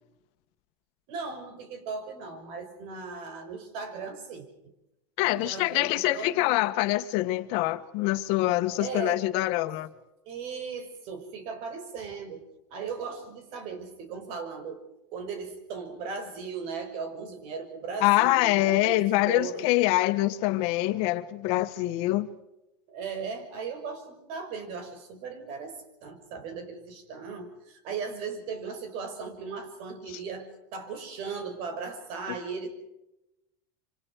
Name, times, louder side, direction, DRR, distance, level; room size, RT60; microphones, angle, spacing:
voice 1, 1.1-4.5 5.3-6.5 8.8-9.2 10.3-12.4 12.7-14.8 15.1-19.7 22.9-30.5 30.7-32.7, right 5 dB, 60° right, 6.1 m, -37 dB
voice 2, 5.2-9.9 18.0-22.3, left 17 dB, 65° left, 1.6 m, -25 dB
26.5 x 25.5 x 4.8 m
supercardioid pair, 125°, 11 cm